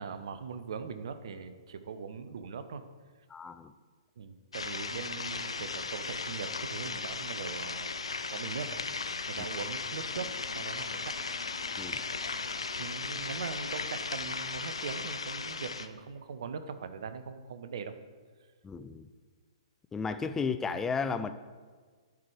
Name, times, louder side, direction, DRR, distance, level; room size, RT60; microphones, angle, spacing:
voice 1, 0.0-2.8 4.2-7.9 8.3-8.9 9.3-11.1 12.8-17.9, right 6 dB, 55° right, 10 dB, 0.6 m, -41 dB
voice 2, 3.3-3.7 11.8-12.0 18.6-19.1 19.9-21.3, left 5 dB, 10° left, 10 dB, 0.3 m, -33 dB
sound 1, 4.5-15.9, left 4 dB, 75° left, 0.5 m, -36 dB
Wind instrument woodwind instrument, 9.7-14.2, left 2 dB, 55° left, 1.2 m, -54 dB
9.4 x 4.6 x 4.8 m, 1.5 s
figure-of-eight pair, 115°, 3 cm